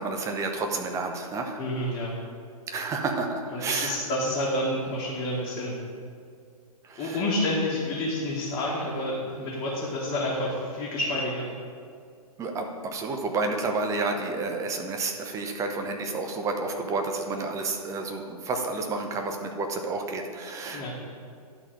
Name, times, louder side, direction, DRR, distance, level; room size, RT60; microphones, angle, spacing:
voice 1, 0.0-1.6 2.7-4.0 6.8-7.2 12.4-20.9, right 3 dB, 15° right, 3 dB, 0.8 m, -30 dB
voice 2, 1.6-2.2 3.5-5.8 7.0-11.5 20.7-20.9, left 1 dB, 20° left, -7 dB, 1.6 m, -29 dB
11.5 x 4.1 x 6.4 m, 2.3 s
figure-of-eight pair, 120°, 20 cm